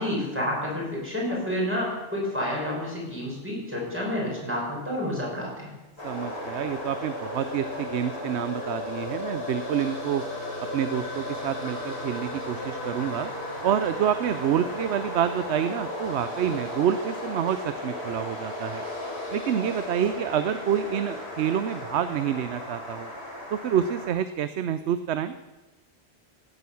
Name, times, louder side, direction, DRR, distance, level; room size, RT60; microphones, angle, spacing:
voice 1, 0.0-5.7, left 1 dB, 10° right, -4 dB, 5.9 m, -29 dB
sound 1, 6.0-24.1, left 1 dB, 75° left, 3.8 m, -35 dB
voice 2, 6.0-10.2 10.7-13.3 13.6-18.8 19.3-23.1 23.5-25.3, right 9 dB, 80° right, 12 dB, 0.9 m, -27 dB
16.5 x 9.3 x 7.0 m, 1.2 s
omnidirectional pair, 1.1 m